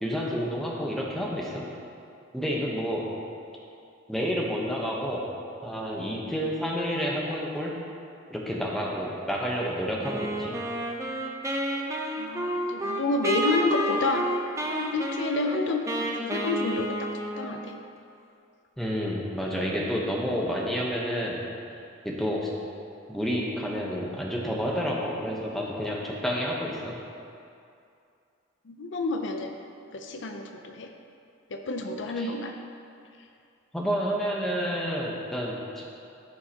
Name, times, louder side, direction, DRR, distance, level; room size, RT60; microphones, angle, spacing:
voice 1, 0.0-1.7 2.3-3.1 4.1-5.2 5.6-7.7 8.3-10.6 18.8-21.4 22.0-22.5 23.1-26.9 32.2-32.3 33.7-35.8, equal, ahead, -4 dB, 0.9 m, -29 dB
Wind instrument woodwind instrument, 10.0-17.7, right 1 dB, 15° right, 0.6 m, -30 dB
voice 2, 12.2-14.3 14.7-17.1 17.4-17.8 28.7-29.5 29.9-30.9 31.5-32.5, left 2 dB, 60° left, 4 dB, 0.5 m, -29 dB
14.0 x 5.5 x 2.9 m, 2.5 s
head